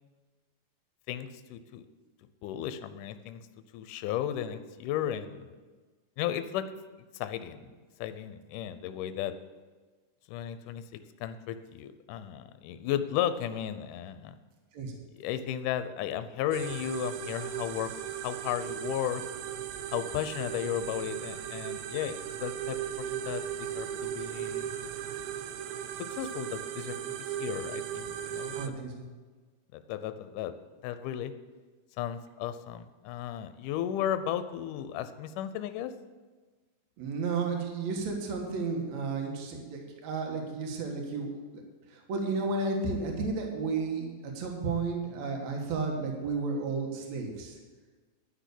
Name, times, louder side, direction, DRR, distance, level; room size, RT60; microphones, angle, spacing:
voice 1, 1.1-1.8 2.4-3.4 3.7-5.5 6.2-6.7 7.1-7.6 8.0-9.3 10.3-10.8 11.2-14.4 15.2-17.9 18.2-19.2 19.9-24.7 26.0-28.6 29.7-30.5 30.8-31.3 32.0-35.9, left 10 dB, 80° left, 11 dB, 2.2 m, -34 dB
sound 1, 16.5-28.7, right 10 dB, 80° right, 1.8 m, -37 dB
voice 2, 28.5-29.1 37.0-41.6 41.9-47.6, right 4 dB, 60° right, 1 dB, 2.6 m, -33 dB
11.5 x 6.1 x 8.3 m, 1.3 s
omnidirectional pair, 3.8 m